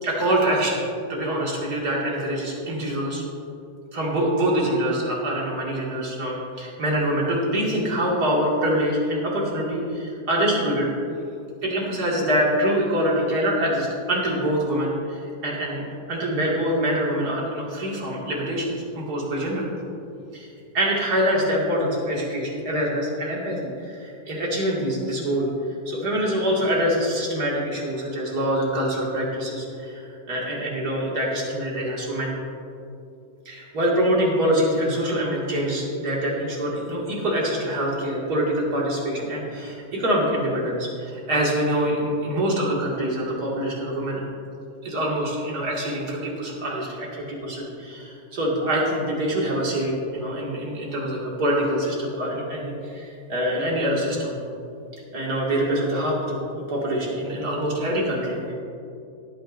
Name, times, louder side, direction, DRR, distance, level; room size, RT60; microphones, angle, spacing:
voice 1, 0.0-0.8 1.1-3.2 3.9-10.9 11.6-19.7 20.3-25.5 25.9-30.0 30.3-32.3 33.5-44.2 44.8-54.3 55.1-58.5, equal, 70° right, -4 dB, 2.7 m, -25 dB
17.5 x 9.0 x 2.6 m, 2.6 s
omnidirectional pair, 1.7 m